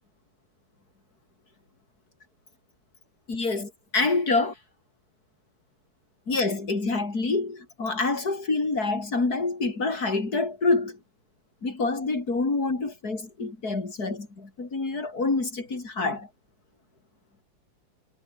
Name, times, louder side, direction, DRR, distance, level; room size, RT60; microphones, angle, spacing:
voice 1, 3.3-4.5 6.3-11.0 11.6-16.3, left 3 dB, 30° left, 4.6 m, -27 dB
omnidirectional pair, 3.6 m